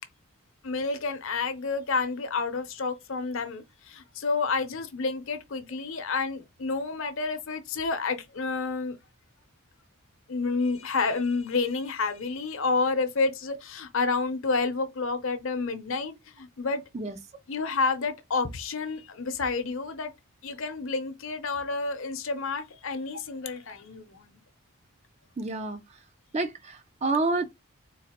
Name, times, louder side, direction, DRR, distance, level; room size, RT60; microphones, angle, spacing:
voice 1, 0.6-9.0 10.3-16.8 17.5-20.1 20.4-24.4, left 4 dB, 65° left, 0.7 m, -29 dB
voice 2, 25.4-25.8 26.3-27.4, right 3 dB, 30° right, 0.4 m, -28 dB
3.9 x 2.5 x 2.9 m
head